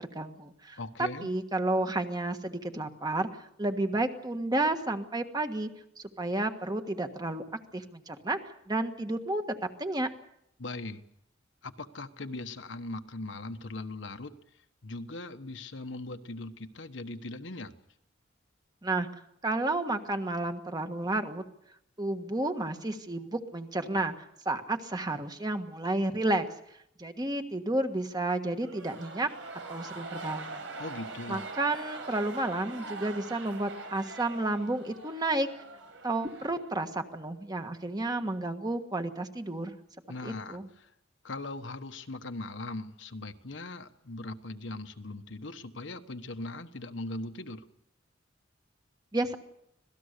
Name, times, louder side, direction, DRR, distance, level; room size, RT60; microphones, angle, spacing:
voice 1, 0.0-3.3 3.6-5.7 6.0-7.4 7.7-9.4 9.8-10.1 18.8-19.1 19.4-21.4 22.0-24.1 24.4-26.4 27.0-29.3 29.7-30.6 31.3-35.5 36.0-39.8 40.2-40.7 49.1-49.4, right 2 dB, 20° right, 7 dB, 1.5 m, -31 dB
voice 2, 0.8-1.3 10.6-11.0 11.6-14.3 14.8-17.7 30.8-31.4 40.1-40.9 41.2-47.6, left 2 dB, 70° left, 8 dB, 1.3 m, -40 dB
sound 1, 28.6-37.0, right 3 dB, 80° right, 5.0 m, -43 dB
26.0 x 18.0 x 6.7 m, 0.77 s
head